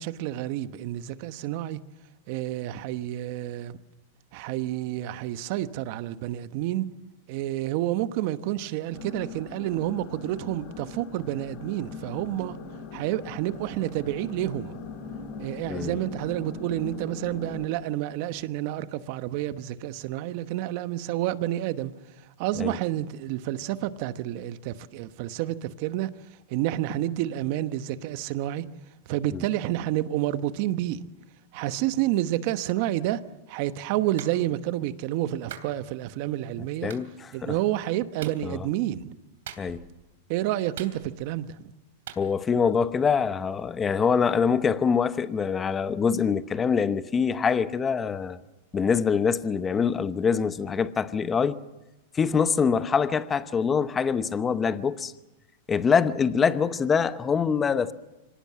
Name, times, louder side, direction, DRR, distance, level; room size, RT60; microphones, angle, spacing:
voice 1, 0.0-1.8 2.3-3.8 4.3-6.9 7.3-12.6 12.9-14.7 15.4-21.9 22.4-26.1 26.5-28.6 29.1-31.0 31.5-33.2 33.5-36.9 37.3-39.1 40.3-41.5, right 14 dB, 50° right, 1.1 m, -29 dB
sound 1, 8.9-17.7, left 4 dB, 40° left, 3.2 m, -40 dB
Clapping, 34.2-34.4 35.5-35.7 36.9-37.1 38.2-38.4 39.5-39.9 40.8-41.3 42.1-42.2, right 10 dB, 80° right, 2.9 m, -41 dB
voice 2, 36.8-37.6 38.4-38.7 39.6-39.8 42.2-48.4 48.7-51.6 52.1-55.1 55.7-57.9, left 6 dB, 15° left, 0.9 m, -24 dB
25.5 x 18.5 x 7.5 m
supercardioid pair, 150°, 0 cm